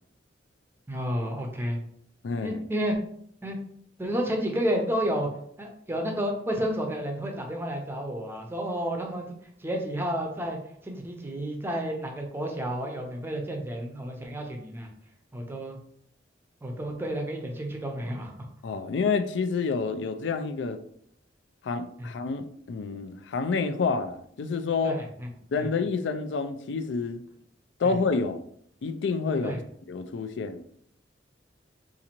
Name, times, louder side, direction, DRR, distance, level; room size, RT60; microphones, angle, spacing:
voice 1, 0.9-1.8 2.4-3.0 3.4-3.6 4.0-5.3 5.6-14.9 15.3-15.8 16.6-18.3 22.0-22.1 24.8-25.3 25.6-25.7 27.8-27.9 29.4-29.6, equal, 15° right, 2 dB, 0.6 m, -31 dB
voice 2, 2.2-2.6 18.6-20.8 21.6-25.0 25.5-27.2 27.8-28.4 28.8-29.5 29.9-30.6, left 4 dB, 75° left, 9 dB, 0.4 m, -28 dB
3.9 x 2.5 x 2.9 m, 0.65 s
head